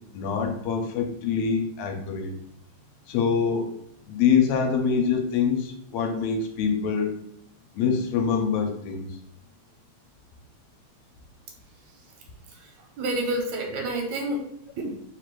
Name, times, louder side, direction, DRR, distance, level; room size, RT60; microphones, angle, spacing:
voice 1, 0.1-2.3 3.1-3.7 4.1-7.1 7.8-9.1, left 6 dB, 75° left, 3 dB, 1.9 m, -25 dB
voice 2, 12.5-14.4 14.8-14.9, right 1 dB, 75° right, 1 dB, 2.2 m, -29 dB
4.6 x 2.5 x 4.5 m, 0.73 s
omnidirectional pair, 3.3 m